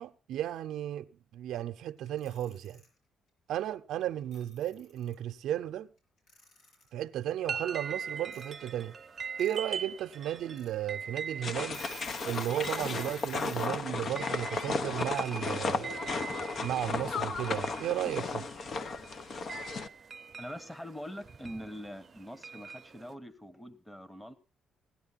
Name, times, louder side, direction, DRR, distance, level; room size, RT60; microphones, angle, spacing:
voice 1, 0.0-2.8 3.5-5.9 6.9-9.0 9.4-11.8 12.2-16.1 16.6-18.5, right 12 dB, 80° right, 0.7 m, -34 dB
Alarm / Clock, 2.1-2.9 4.0-4.1 4.3-5.1 6.3-6.9 8.3-8.4 9.2-9.6 10.0-10.1 10.5-10.7 11.2-11.3 11.6-13.7, left 3 dB, 80° left, 7.8 m, -50 dB
sound 1, 7.4-23.1, right 6 dB, 40° right, 0.7 m, -43 dB
sound 2, 11.4-19.9, left 4 dB, 55° left, 1.0 m, -34 dB
voice 2, 20.4-24.3, equal, 10° left, 1.3 m, -43 dB
17.5 x 11.0 x 4.1 m
cardioid pair, 90°, 0 cm